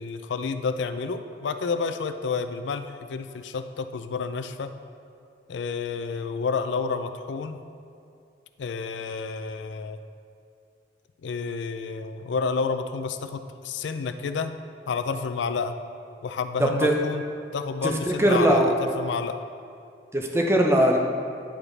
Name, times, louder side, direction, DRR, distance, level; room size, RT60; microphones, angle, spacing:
voice 1, 0.0-4.7 5.5-7.6 8.6-10.0 11.2-14.5 14.9-15.8 16.2-17.2 17.5-19.4, left 5 dB, 80° left, 9 dB, 0.4 m, -30 dB
voice 2, 16.6-17.0 17.8-18.7 20.1-21.0, right 1 dB, 15° right, 1 dB, 0.6 m, -20 dB
10.5 x 4.8 x 3.2 m, 2.5 s
head